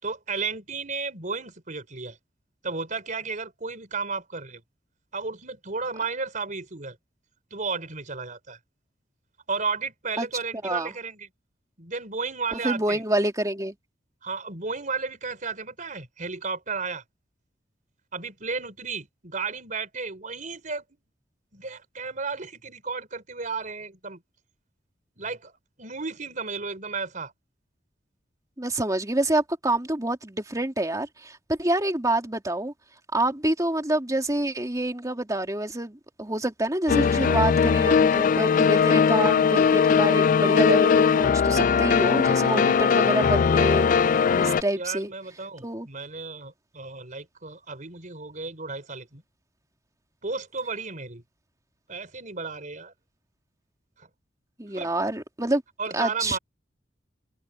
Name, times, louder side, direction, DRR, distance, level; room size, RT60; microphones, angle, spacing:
voice 1, 0.0-2.2 2.6-4.6 5.1-7.0 7.5-8.6 9.5-11.3 11.8-13.0 14.2-17.0 18.1-20.8 21.5-24.2 25.2-25.5 25.8-27.3 44.8-49.2 50.2-51.2 51.9-52.9 54.0-54.1 54.7-54.9 55.8-56.4, right 4 dB, 45° right, 4.1 m, -33 dB
voice 2, 12.5-13.7 28.6-32.7 33.1-43.9 44.4-45.1 45.6-45.9 54.6-55.6 55.9-56.4, right 1 dB, 20° right, 2.8 m, -27 dB
sound 1, 36.9-44.6, left 6 dB, 45° left, 0.3 m, -20 dB
head